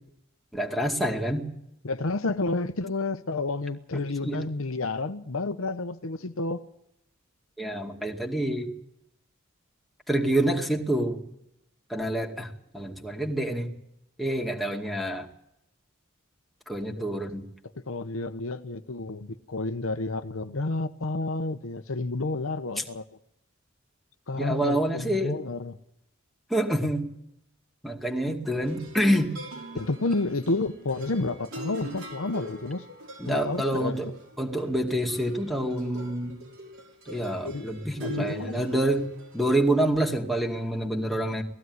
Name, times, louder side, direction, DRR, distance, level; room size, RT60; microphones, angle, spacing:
voice 1, 0.5-1.5 4.2-4.4 7.6-8.7 10.1-11.2 11.9-12.5 12.7-13.7 14.2-15.3 16.7-17.5 22.8-22.9 24.4-25.3 26.5-27.1 27.8-29.3 33.2-34.1 34.4-36.4 37.1-41.4, right 1 dB, ahead, 2.3 m, -27 dB
voice 2, 1.8-6.6 16.9-17.2 17.7-23.0 24.3-25.8 28.3-28.5 29.7-32.8 33.3-34.1 37.4-37.7 38.0-38.7, left 2 dB, 75° left, 0.9 m, -30 dB
sound 1, 28.6-39.6, equal, 80° right, 6.2 m, -43 dB
19.0 x 15.5 x 9.6 m
head